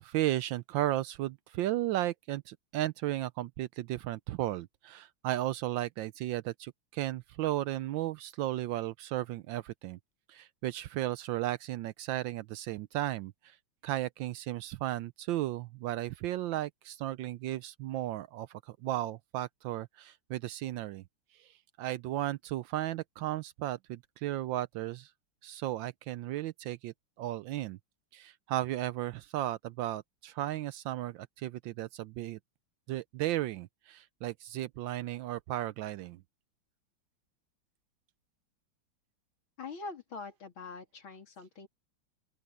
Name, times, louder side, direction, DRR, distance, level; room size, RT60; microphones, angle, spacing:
voice 1, 0.0-10.0 10.3-13.6 13.8-21.0 21.4-25.1 25.4-27.8 28.1-32.4 32.9-36.2, right 14 dB, 75° right, 1.3 m, -35 dB
voice 2, 39.6-41.7, left 4 dB, 85° left, 3.9 m, -44 dB
open air
omnidirectional pair, 2.2 m